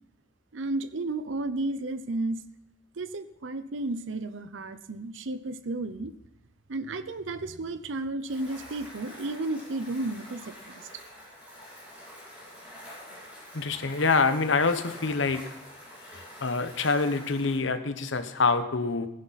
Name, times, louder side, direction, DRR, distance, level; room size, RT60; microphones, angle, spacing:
voice 1, 0.5-2.4 3.0-6.1 6.7-11.1, right 2 dB, 80° right, 12 dB, 0.7 m, -33 dB
sound 1, 8.3-17.6, equal, 10° right, 5.3 m, -46 dB
voice 2, 13.5-15.4 16.4-19.1, left 4 dB, 75° left, 10 dB, 0.9 m, -26 dB
15.5 x 10.5 x 4.1 m, 0.82 s
head